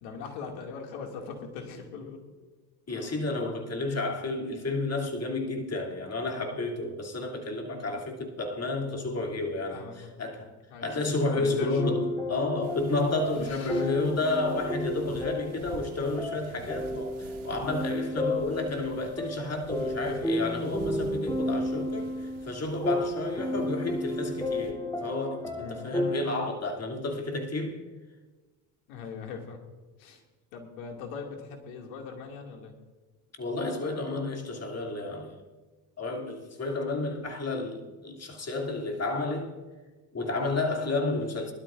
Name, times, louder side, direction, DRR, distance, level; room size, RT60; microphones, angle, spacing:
voice 1, 0.0-2.2 2.9-3.1 7.7-8.0 9.7-10.1 10.7-11.0 11.3-12.0 13.2-13.9 25.6-25.8 28.9-29.6 30.0-30.2 30.5-32.7 37.0-37.2, left 5 dB, 85° left, 2.3 m, -41 dB
voice 2, 2.9-10.5 10.8-27.8 33.4-35.4 36.0-39.6 40.1-41.5, left 2 dB, 30° left, 2.7 m, -31 dB
sound 1, 11.8-26.3, left 1 dB, 5° left, 3.0 m, -32 dB
bed sheets, 12.6-24.7, right 5 dB, 70° right, 1.6 m, -49 dB
21.5 x 12.0 x 2.5 m
hypercardioid pair, 70°, 48 cm